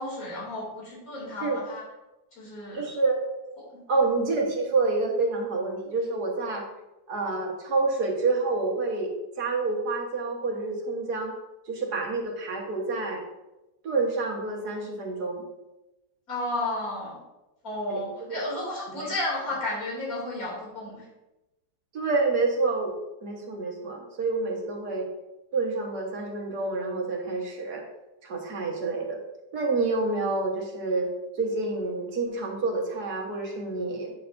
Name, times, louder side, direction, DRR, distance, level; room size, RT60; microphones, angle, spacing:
voice 1, 0.0-1.8 2.3-2.8 3.7-3.8 16.3-17.1 17.6-21.1, left 2 dB, 55° left, -5 dB, 3.3 m, -32 dB
voice 2, 2.7-3.2 3.9-6.6 7.1-9.1 9.4-11.3 11.7-13.2 13.8-15.4 17.9-18.0 18.3-18.4 18.9-19.1 21.9-22.9 23.2-25.1 25.5-27.8 28.2-29.2 29.5-31.1 31.4-34.1, right 3 dB, 65° right, 0 dB, 1.8 m, -28 dB
9.1 x 6.7 x 2.6 m, 0.98 s
omnidirectional pair, 1.9 m